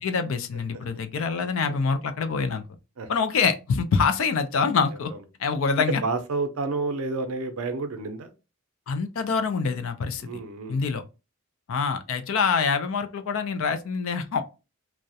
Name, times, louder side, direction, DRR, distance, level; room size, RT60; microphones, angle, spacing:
voice 1, 0.0-2.6 3.1-5.1 5.4-6.0 8.9-10.3 10.7-11.0 11.7-14.4, left 5 dB, 65° left, 0.4 m, -25 dB
voice 2, 6.0-8.3 10.2-10.8, right 3 dB, 75° right, 0.5 m, -30 dB
2.3 x 2.0 x 2.6 m
head